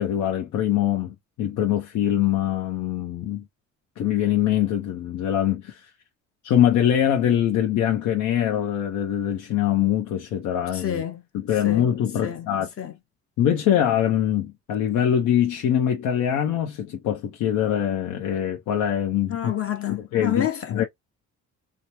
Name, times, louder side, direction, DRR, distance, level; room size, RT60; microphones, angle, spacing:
voice 1, 0.0-3.4 4.0-5.9 6.4-11.0 11.3-12.7 13.4-19.5 20.1-20.5 20.7-20.8, left 10 dB, 85° left, 0.7 m, -23 dB
voice 2, 10.7-11.2 11.6-11.9 12.2-12.5 12.8-12.9 19.3-20.8, left 10 dB, 45° left, 0.9 m, -28 dB
2.9 x 2.0 x 2.9 m
cardioid pair, 90°, 30 cm